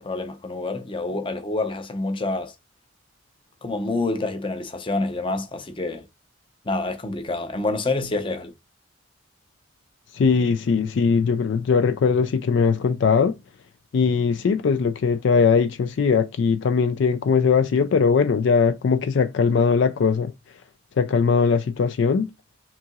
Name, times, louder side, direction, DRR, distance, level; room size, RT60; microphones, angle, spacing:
voice 1, 0.0-2.5 3.6-6.0 6.7-8.5, left 2 dB, 25° left, 0.6 m, -27 dB
voice 2, 10.1-13.4 13.9-20.3 21.0-22.3, left 5 dB, 60° left, 0.3 m, -20 dB
5.6 x 2.8 x 2.3 m
head